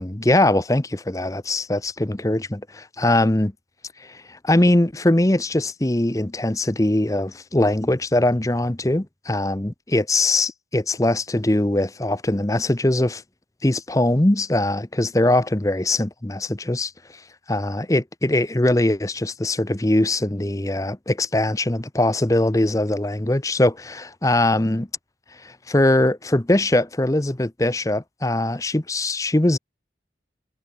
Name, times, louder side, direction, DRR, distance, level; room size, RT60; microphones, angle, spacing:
voice 1, 0.0-3.5 4.0-13.2 13.6-16.9 17.5-24.9 25.4-29.6, left 1 dB, 20° left, 0.8 m, -21 dB
head